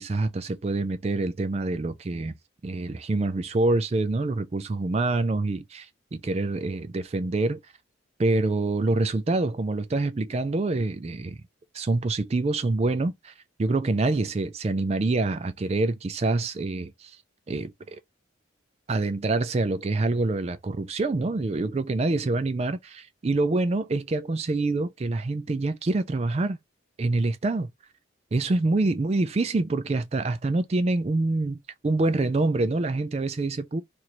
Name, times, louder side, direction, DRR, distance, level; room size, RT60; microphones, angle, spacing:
voice 1, 0.0-2.3 2.6-7.6 8.2-11.4 11.7-13.3 13.6-17.2 17.5-18.0 18.9-26.6 27.0-27.7 28.3-31.6 31.8-33.8, right 2 dB, 30° right, 0.4 m, -26 dB
2.9 x 2.6 x 4.3 m
head